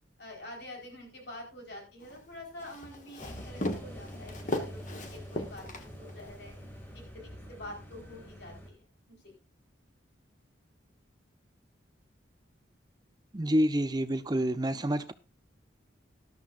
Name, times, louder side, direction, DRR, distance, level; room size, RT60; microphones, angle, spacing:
voice 1, 0.2-6.6 6.9-9.3, left 1 dB, 60° left, 4.5 m, -47 dB
Walk footsteps, 2.0-6.4, left 1 dB, 40° left, 1.4 m, -37 dB
sound 1, 3.2-8.7, equal, 10° left, 2.4 m, -46 dB
voice 2, 13.3-15.1, equal, 20° right, 0.7 m, -28 dB
13.5 x 12.0 x 2.6 m
head